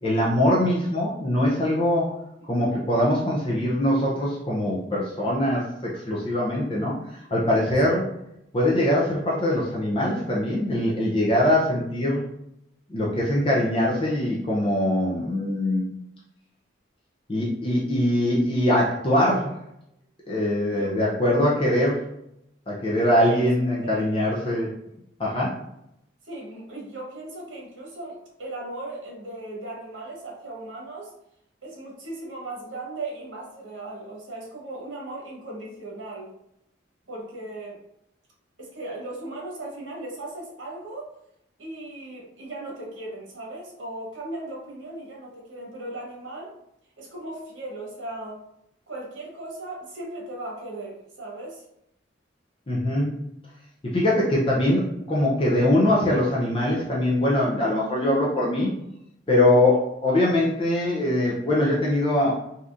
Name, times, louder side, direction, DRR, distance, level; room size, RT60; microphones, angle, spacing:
voice 1, 0.0-2.1 2.5-8.1 8.5-12.2 12.9-15.9 17.3-19.6 20.3-22.0 22.7-24.7 25.2-25.5 52.7-53.2 53.8-58.7 59.3-62.3, left 1 dB, 30° left, -5 dB, 0.5 m, -22 dB
voice 2, 23.0-23.4 23.8-24.1 26.2-31.1 31.6-36.4 37.1-37.8 38.6-41.1 41.6-46.5 47.0-48.4 48.9-51.7 59.6-59.8, right 2 dB, 75° right, -3 dB, 1.1 m, -37 dB
3.6 x 2.8 x 2.5 m, 0.80 s
head